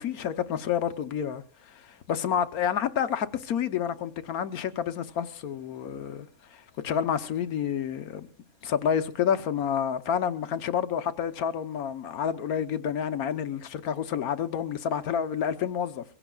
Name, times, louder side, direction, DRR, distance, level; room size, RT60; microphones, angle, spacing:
voice 1, 0.0-8.3 8.6-16.0, left 8 dB, 80° left, 1.4 m, -29 dB
24.0 x 16.0 x 2.3 m
omnidirectional pair, 1.5 m